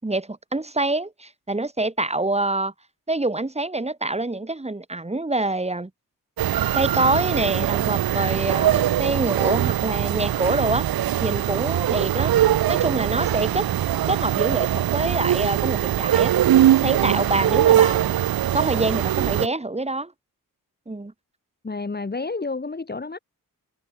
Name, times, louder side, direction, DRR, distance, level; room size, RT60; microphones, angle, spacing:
voice 1, 0.0-2.7 3.1-5.9 6.7-10.9 11.2-12.4 12.7-13.7 14.1-16.3 16.8-18.2 18.5-20.1 20.9-21.1, right 2 dB, 20° right, 7.0 m, -25 dB
sound 1, 6.4-19.5, right 12 dB, 90° right, 0.8 m, -21 dB
voice 2, 21.6-23.2, left 3 dB, 30° left, 4.1 m, -30 dB
wide cardioid pair, 140°, 35 cm